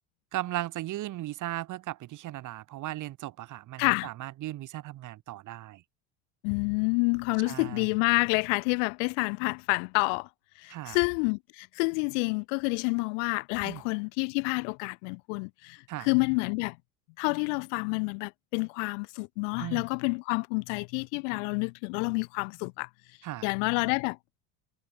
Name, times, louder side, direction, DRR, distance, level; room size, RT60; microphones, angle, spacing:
voice 1, 0.3-5.8 7.5-7.9 10.7-11.0 13.6-13.8 15.9-16.1 19.6-19.8 23.2-23.5, right 15 dB, 55° right, 3.5 m, -37 dB
voice 2, 3.8-4.1 6.4-10.3 10.6-16.8 17.2-22.9 23.4-24.2, left 35 dB, 75° left, 0.9 m, -28 dB
supercardioid pair, 100°, 36 cm